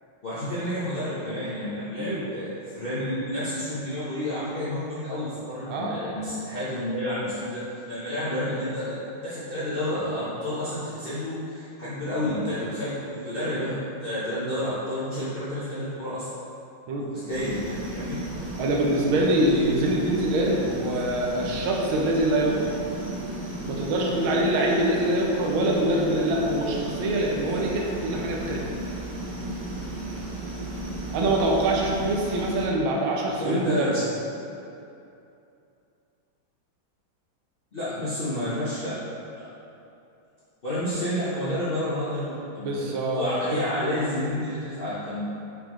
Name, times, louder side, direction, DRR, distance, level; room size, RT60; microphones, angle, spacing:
voice 1, 0.2-9.0 9.2-16.3 17.1-17.6 17.9-18.2 33.4-34.0 37.7-39.0 39.3-39.5 40.6-45.2, left 1 dB, 55° left, -12 dB, 0.6 m, -30 dB
voice 2, 5.7-6.0 16.9-17.1 18.6-22.8 23.7-28.6 31.1-34.0 42.6-43.4, right 1 dB, 80° right, -1 dB, 1.4 m, -24 dB
sound 1, 17.3-32.7, right 1 dB, 55° right, 1.2 m, -34 dB
4.8 x 3.6 x 3.0 m, 2.6 s
omnidirectional pair, 2.3 m